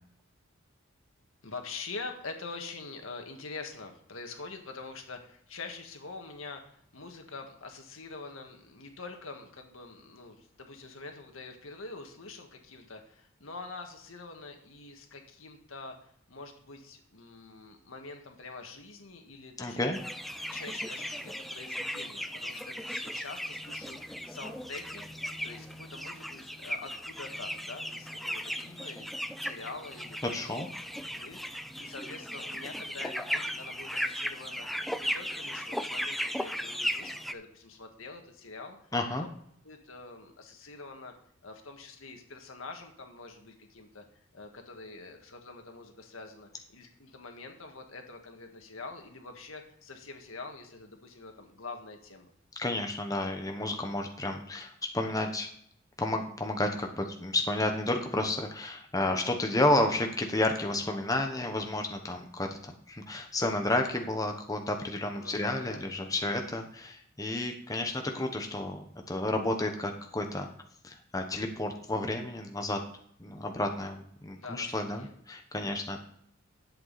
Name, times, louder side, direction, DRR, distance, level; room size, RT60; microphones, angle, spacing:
voice 1, 1.4-19.9 20.4-25.1 25.4-29.1 29.4-30.6 31.1-34.7 35.0-38.8 39.1-39.3 39.6-41.1 41.4-44.0 44.3-52.3 65.2-65.8 74.4-75.1, left 3 dB, 85° left, 4 dB, 1.7 m, -45 dB
voice 2, 19.6-20.0 30.3-30.7 38.9-39.3 52.6-55.5 56.0-70.5 70.8-72.8 73.2-76.0, left 2 dB, 15° left, 4 dB, 1.1 m, -31 dB
sound 1, 19.9-37.3, equal, ahead, 0.4 m, -37 dB
11.0 x 8.0 x 4.1 m, 0.66 s
head